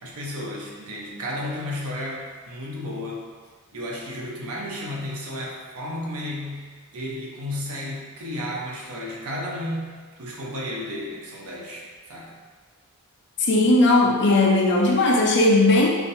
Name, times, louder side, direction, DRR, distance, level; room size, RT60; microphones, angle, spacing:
voice 1, 0.0-3.2 3.7-6.6 6.9-12.3, left 1 dB, 75° right, -3 dB, 0.9 m, -33 dB
voice 2, 13.4-15.9, left 2 dB, 55° left, -1 dB, 0.6 m, -17 dB
6.0 x 2.7 x 2.7 m, 1.5 s
head